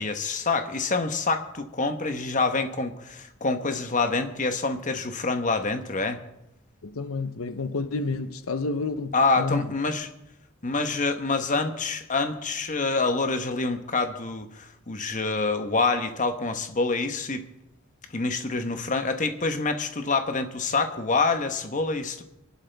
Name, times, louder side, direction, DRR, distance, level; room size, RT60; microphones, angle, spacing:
voice 1, 0.0-6.2 9.1-10.1 10.6-17.5 18.1-22.2, left 3 dB, 40° left, 1.2 m, -26 dB
voice 2, 6.8-9.7, left 3 dB, 85° left, 0.8 m, -30 dB
25.0 x 11.5 x 3.5 m
head